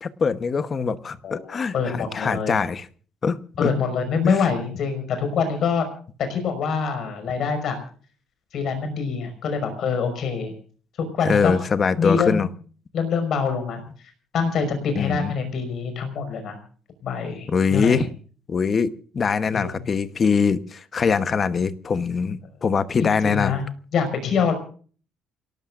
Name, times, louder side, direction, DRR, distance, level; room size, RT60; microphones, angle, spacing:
voice 1, 0.0-2.8 3.2-3.7 4.2-4.5 11.2-12.5 14.9-15.3 17.5-18.1 18.5-23.6, left 5 dB, 25° left, 12 dB, 1.0 m, -23 dB
voice 2, 1.2-2.6 3.6-5.9 6.3-7.8 8.5-10.5 11.1-11.6 12.0-12.5 12.9-13.8 14.3-16.6 17.0-18.1 19.5-19.8 23.0-23.6 23.9-24.5, left 5 dB, 45° left, 8 dB, 5.5 m, -25 dB
28.5 x 18.5 x 2.5 m, 0.43 s
cardioid pair, 165°, 0 cm